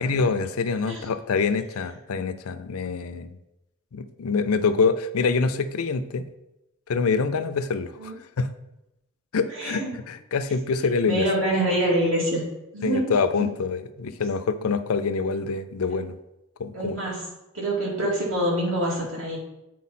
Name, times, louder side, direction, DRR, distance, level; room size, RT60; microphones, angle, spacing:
voice 1, 0.0-3.4 3.9-6.3 6.9-8.5 9.3-9.8 10.1-11.3 12.8-16.1 16.6-17.0, left 4 dB, 85° left, 11 dB, 0.5 m, -25 dB
voice 2, 9.5-9.9 10.7-12.4 12.7-13.5 14.6-14.7 16.7-17.3 17.5-19.4, right 1 dB, 70° right, -4 dB, 2.5 m, -26 dB
8.4 x 4.4 x 4.2 m, 0.93 s
head